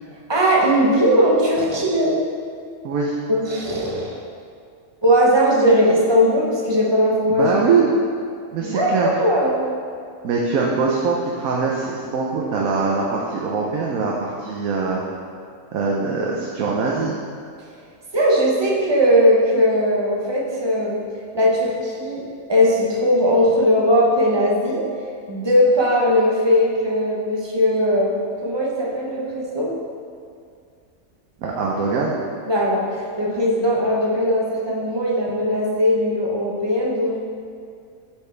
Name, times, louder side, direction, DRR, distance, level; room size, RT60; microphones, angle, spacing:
voice 1, 0.3-2.2 3.3-4.2 5.0-7.5 8.6-8.9 9.2-9.7 18.1-21.0 21.3-22.2 22.5-24.9 25.3-28.2 28.4-29.7 32.5-37.2, equal, 25° right, -3 dB, 0.7 m, -19 dB
voice 2, 2.8-3.2 7.3-7.9 8.5-9.1 10.2-15.0 15.7-17.1 31.4-32.2, right 4 dB, 80° right, -2 dB, 1.1 m, -22 dB
8.2 x 4.6 x 3.3 m, 2.3 s
omnidirectional pair, 1.5 m